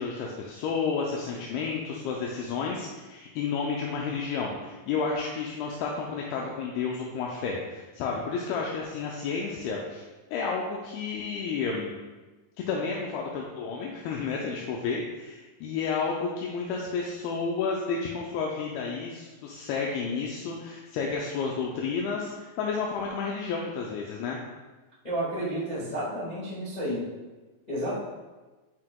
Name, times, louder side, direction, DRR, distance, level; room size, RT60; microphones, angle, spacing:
voice 1, 0.0-10.0 10.3-12.0 12.7-24.4, left 5 dB, 85° left, -1 dB, 2.5 m, -31 dB
voice 2, 25.0-27.0 27.7-28.0, right 1 dB, 65° left, -9 dB, 0.4 m, -31 dB
9.4 x 4.7 x 2.2 m, 1.2 s
omnidirectional pair, 4.3 m